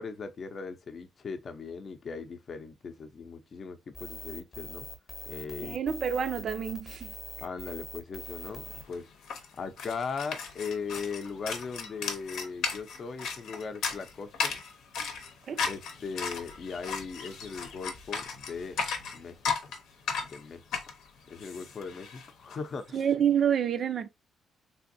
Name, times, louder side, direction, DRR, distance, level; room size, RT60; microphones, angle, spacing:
voice 1, 0.0-4.9 5.3-5.8 7.4-9.1 9.6-14.6 15.7-18.8 19.1-19.4 20.3-20.6 21.3-23.0, left 5 dB, 45° left, 0.5 m, -39 dB
sound 1, 3.9-8.8, left 2 dB, 25° left, 0.8 m, -43 dB
voice 2, 5.6-7.1 15.5-15.6 22.9-24.1, right 8 dB, 55° right, 0.4 m, -28 dB
sound 2, 8.4-8.5 8.7-22.6, left 5 dB, 85° left, 0.8 m, -36 dB
3.4 x 2.6 x 2.6 m
cardioid pair, 90°, 0 cm